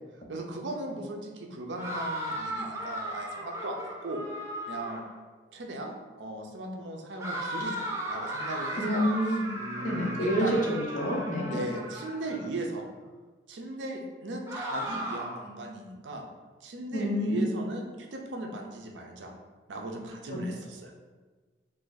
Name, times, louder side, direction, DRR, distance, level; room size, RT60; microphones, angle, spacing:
voice 1, 0.3-4.2 4.7-5.0 5.5-9.1 9.5-10.6 11.5-12.8 13.5-16.2 16.6-19.3 19.7-20.9, right 1 dB, 85° right, 2 dB, 0.5 m, -37 dB
sound 1, 1.8-5.2 7.2-12.5 14.5-15.5, right 1 dB, 15° right, 0.4 m, -36 dB
voice 2, 8.8-9.5 9.8-11.6 16.9-17.5 20.3-20.4, equal, 45° left, -3 dB, 0.7 m, -28 dB
2.8 x 2.5 x 3.8 m, 1.3 s
head